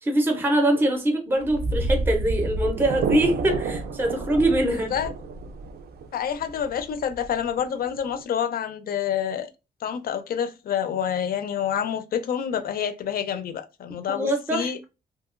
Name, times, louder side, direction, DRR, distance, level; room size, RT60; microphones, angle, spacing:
voice 1, 0.0-4.9 14.1-14.8, right 1 dB, 10° right, 0.5 m, -23 dB
sound 1, 1.4-8.2, right 3 dB, 65° right, 0.4 m, -29 dB
voice 2, 6.1-9.5 9.8-14.8, left 8 dB, 60° left, 0.4 m, -28 dB
2.8 x 2.7 x 2.4 m
wide cardioid pair, 165°, 17 cm